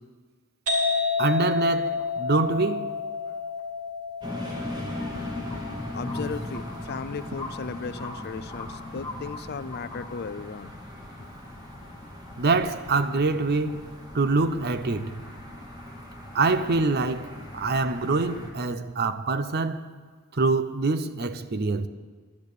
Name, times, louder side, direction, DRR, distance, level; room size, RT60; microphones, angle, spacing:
sound 1, 0.7-8.1, left 4 dB, 85° right, 2.3 m, -31 dB
voice 1, 1.2-2.9 12.4-15.2 16.3-19.9 20.3-21.9, right 3 dB, 45° right, 0.6 m, -25 dB
sound 2, 2.0-2.1 2.9-3.0 3.6-3.7 4.9-5.1 5.5-5.6 6.1-6.2 6.5-7.0 7.3-7.5 7.7-8.7 9.0-9.4 9.7-10.1, left 3 dB, 10° left, 1.9 m, -40 dB
sound 3, 4.2-18.5, left 1 dB, 20° right, 2.1 m, -39 dB
voice 2, 5.9-10.7, left 4 dB, 45° left, 0.4 m, -36 dB
11.0 x 10.5 x 8.1 m
head